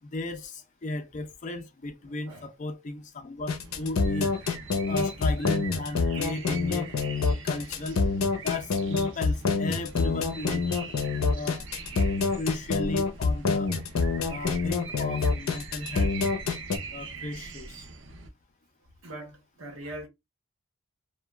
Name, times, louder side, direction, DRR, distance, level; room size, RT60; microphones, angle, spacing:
voice 1, 0.0-4.3 4.8-6.9 7.4-8.0 8.4-10.6 11.3-11.6 12.4-13.7 14.3-16.3 16.9-17.9, left 2 dB, 35° left, 0.4 m, -35 dB
sound 1, 3.5-16.8, left 4 dB, 90° left, 0.6 m, -26 dB
sound 2, 3.6-18.3, right 4 dB, 60° right, 0.5 m, -43 dB
voice 2, 19.0-20.1, right 1 dB, 85° right, 1.0 m, -41 dB
2.9 x 2.2 x 2.2 m
head